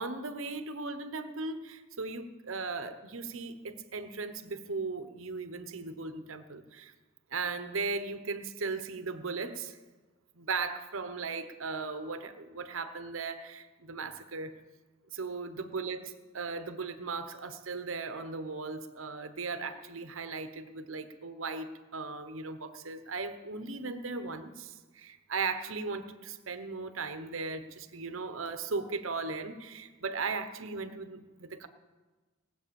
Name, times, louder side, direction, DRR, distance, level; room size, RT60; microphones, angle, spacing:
voice 1, 0.0-6.9 7.3-9.8 10.3-14.6 15.1-31.7, right 4 dB, 75° right, 10 dB, 1.0 m, -37 dB
18.5 x 7.9 x 7.0 m, 1.3 s
head